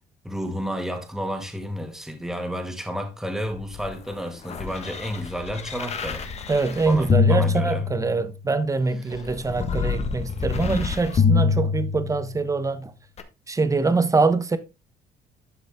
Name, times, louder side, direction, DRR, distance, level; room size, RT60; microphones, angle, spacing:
voice 1, 0.2-6.3 6.9-7.9 9.1-9.2, equal, ahead, 2.1 m, -31 dB
sound 1, 3.5-8.4 9.1-12.4 13.2-13.3, left 5 dB, 40° left, 1.6 m, -26 dB
voice 2, 6.5-12.9 13.5-14.6, right 3 dB, 20° right, 1.1 m, -24 dB
12.0 x 6.1 x 3.7 m
cardioid pair, 110°, 17 cm